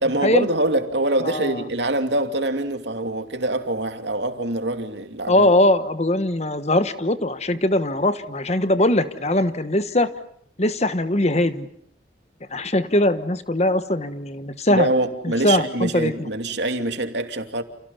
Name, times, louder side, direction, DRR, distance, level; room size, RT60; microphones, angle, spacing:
voice 1, 0.0-5.5 14.7-17.6, right 1 dB, 70° right, 2.7 m, -24 dB
voice 2, 1.2-1.6 5.3-10.1 10.6-11.7 12.5-14.9 15.2-16.3, left 1 dB, 35° left, 1.2 m, -21 dB
29.5 x 29.0 x 5.7 m
head